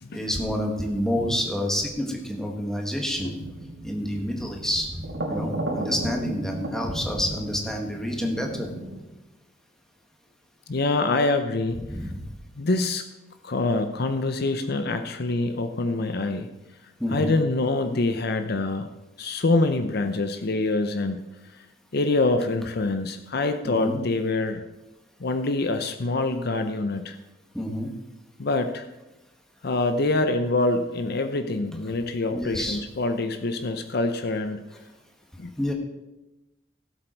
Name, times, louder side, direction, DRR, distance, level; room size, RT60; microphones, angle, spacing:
voice 1, 0.1-3.3 3.8-5.0 5.3-8.7 11.9-12.3 17.0-17.4 23.6-24.0 27.5-27.9 32.3-32.8 35.6-35.7, equal, 5° left, 1 dB, 1.8 m, -28 dB
sound 1, 3.2-9.0, right 1 dB, 85° right, 3.6 m, -35 dB
voice 2, 10.7-11.8 12.6-13.0 13.4-16.5 17.1-18.9 19.2-21.2 21.6-21.7 21.9-24.6 25.2-27.2 28.4-28.9 29.6-34.6 35.4-35.5, left 2 dB, 55° left, 8 dB, 0.7 m, -25 dB
17.0 x 7.9 x 4.5 m, 1.0 s
head